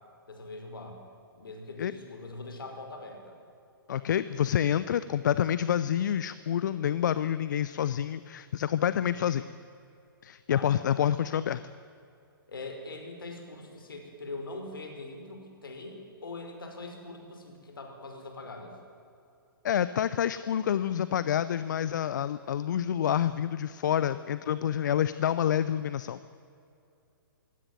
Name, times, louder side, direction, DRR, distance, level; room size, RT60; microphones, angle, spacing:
voice 1, 0.3-1.0 1.3-3.4 9.1-9.2 10.5-10.7 12.5-18.7, left 2 dB, 70° left, 4 dB, 5.4 m, -42 dB
voice 2, 3.9-9.4 10.2-11.6 19.6-26.2, left 9 dB, 55° left, 14 dB, 0.7 m, -28 dB
23.5 x 17.0 x 9.4 m, 2.6 s
figure-of-eight pair, 125°, 12 cm